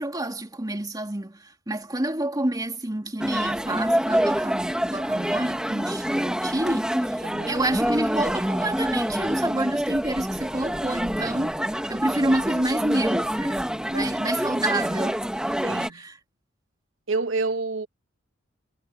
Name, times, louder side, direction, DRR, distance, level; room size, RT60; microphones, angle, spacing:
voice 1, 0.0-11.6 11.9-15.2 15.9-16.2, right 1 dB, 20° right, 2.4 m, -28 dB
sound 1, 3.2-15.9, equal, 5° right, 1.4 m, -26 dB
voice 2, 7.2-7.7 13.9-14.3 15.6-16.0 17.1-17.9, right 3 dB, 75° right, 1.0 m, -29 dB
head